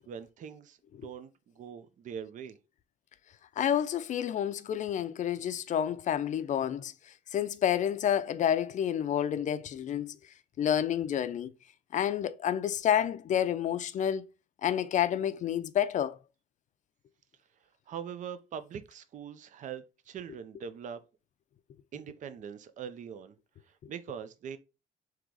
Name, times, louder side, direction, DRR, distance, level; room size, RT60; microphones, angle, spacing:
voice 1, 0.0-2.6 17.6-21.0 21.9-23.4 23.6-24.6, right 8 dB, 50° right, 0.6 m, -42 dB
voice 2, 3.6-6.9 7.3-10.1 10.6-11.5 11.9-14.3 14.6-16.2, left 9 dB, 45° left, 0.5 m, -29 dB
3.8 x 3.0 x 4.7 m
cardioid pair, 110°, 17 cm